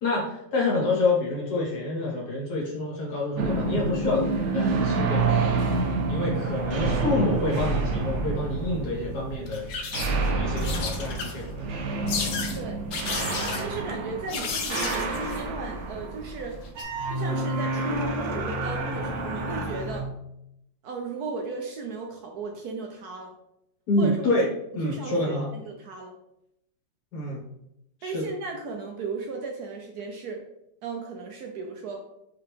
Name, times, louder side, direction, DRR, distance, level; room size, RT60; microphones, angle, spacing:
voice 1, 0.0-4.3 4.5-5.6 6.1-9.6 10.4-12.2 23.9-24.5 24.7-25.5 27.1-27.4 28.0-28.3, left 2 dB, 60° left, -4 dB, 1.8 m, -27 dB
sound 1, 3.4-20.0, right 3 dB, 90° right, 0.6 m, -28 dB
sound 2, 9.5-10.3 10.6-11.5 12.1-12.6 12.9-13.6 14.3-15.4 16.7-16.8, left 5 dB, 80° left, 1.5 m, -32 dB
voice 2, 13.6-16.6 17.1-20.1 20.8-23.3 24.0-24.3 24.8-26.1 28.0-30.4 30.8-32.0, right 3 dB, 70° right, 2 dB, 1.0 m, -35 dB
4.9 x 3.3 x 3.3 m, 0.81 s
omnidirectional pair, 2.0 m